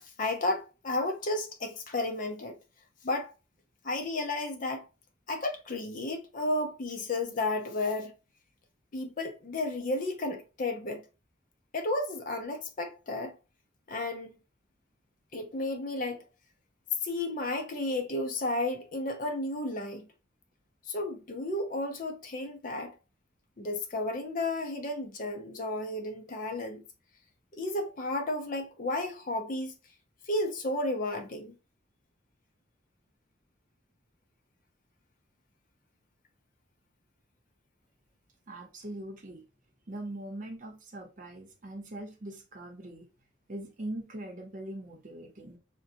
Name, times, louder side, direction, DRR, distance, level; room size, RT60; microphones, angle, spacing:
voice 1, 0.2-2.6 3.0-3.3 3.8-4.8 5.3-8.1 8.9-11.0 11.7-13.4 13.9-14.4 15.3-16.2 17.0-20.0 20.9-22.9 23.6-26.8 27.5-29.7 30.3-31.6, left 2 dB, 40° left, 0.5 m, -32 dB
voice 2, 38.5-39.4 39.9-43.1 43.5-45.6, right 1 dB, 40° right, 0.7 m, -41 dB
3.9 x 2.2 x 2.5 m
head